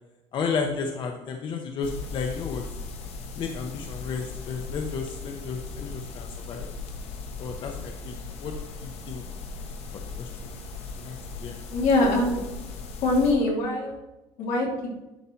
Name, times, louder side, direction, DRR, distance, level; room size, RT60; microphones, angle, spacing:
voice 1, 0.3-2.6 3.3-6.7 7.4-8.1 8.4-9.2 10.2-10.5 10.9-11.6, left 5 dB, 45° left, 3 dB, 0.9 m, -33 dB
sound 1, 1.8-13.3, left 4 dB, 65° left, 1.3 m, -38 dB
voice 2, 11.7-12.4 13.0-14.0 14.4-14.7, left 2 dB, 85° left, -2 dB, 2.9 m, -23 dB
11.0 x 4.3 x 4.4 m, 1.0 s
cardioid pair, 155°, 11 cm